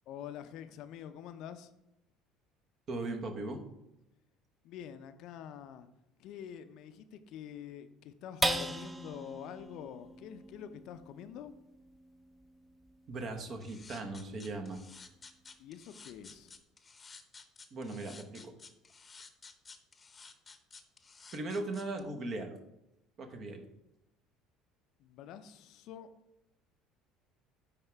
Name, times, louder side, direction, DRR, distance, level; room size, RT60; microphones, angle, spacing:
voice 1, 0.1-1.7 4.6-5.9 6.2-11.5 15.6-16.5 25.0-26.1, left 9 dB, 60° left, 11 dB, 0.5 m, -46 dB
voice 2, 2.9-3.6 13.1-14.8 17.7-18.5 21.3-22.6 23.2-23.6, right 2 dB, 50° right, 5 dB, 1.2 m, -38 dB
sound 1, 8.4-15.1 15.6-15.7 16.1-16.6, right 1 dB, 15° right, 0.6 m, -40 dB
sound 2, 13.6-22.0, left 4 dB, 25° left, 0.8 m, -53 dB
9.9 x 3.5 x 3.4 m, 0.87 s
hypercardioid pair, 65°, 0 cm